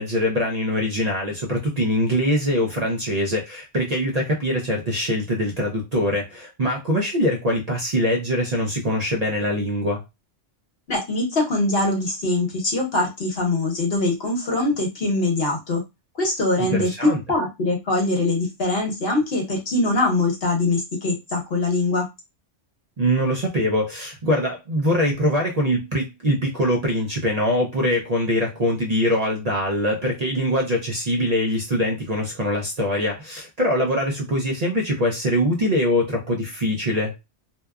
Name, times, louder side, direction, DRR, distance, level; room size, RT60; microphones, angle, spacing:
voice 1, 0.0-10.0 16.6-17.2 23.0-37.1, equal, 50° right, -1 dB, 0.5 m, -23 dB
voice 2, 10.9-15.8 16.2-16.9 17.3-22.1, left 2 dB, 55° left, 0 dB, 1.1 m, -23 dB
2.8 x 2.2 x 2.3 m, 0.23 s
omnidirectional pair, 1.2 m